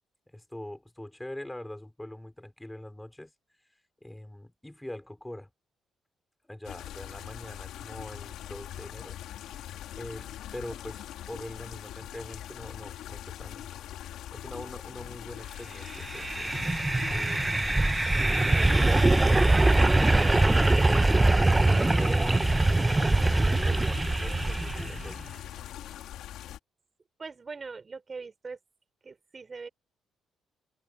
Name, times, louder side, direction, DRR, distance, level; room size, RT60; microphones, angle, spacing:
voice 1, 0.3-3.3 4.0-5.5 6.5-9.2 10.0-13.7 14.3-18.0 18.4-20.8 21.3-25.3, left 1 dB, 5° left, 3.9 m, -43 dB
sound 1, 6.6-26.6, left 12 dB, 85° left, 2.5 m, -42 dB
sound 2, 15.9-25.1, right 2 dB, 15° right, 0.6 m, -23 dB
voice 2, 27.2-28.6 29.0-29.7, right 4 dB, 35° right, 4.6 m, -41 dB
cardioid pair, 90°, 0 cm